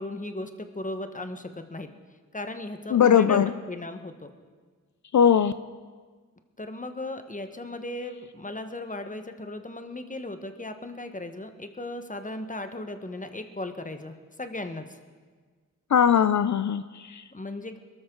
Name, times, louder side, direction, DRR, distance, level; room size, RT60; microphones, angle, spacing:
voice 1, 0.0-1.9 2.3-4.3 6.6-15.0 17.3-17.8, left 2 dB, 25° left, 7 dB, 1.3 m, -36 dB
voice 2, 2.9-3.5 5.1-5.5 15.9-17.2, left 8 dB, 60° left, 12 dB, 0.5 m, -20 dB
21.5 x 13.0 x 3.9 m, 1.5 s
cardioid pair, 55°, 34 cm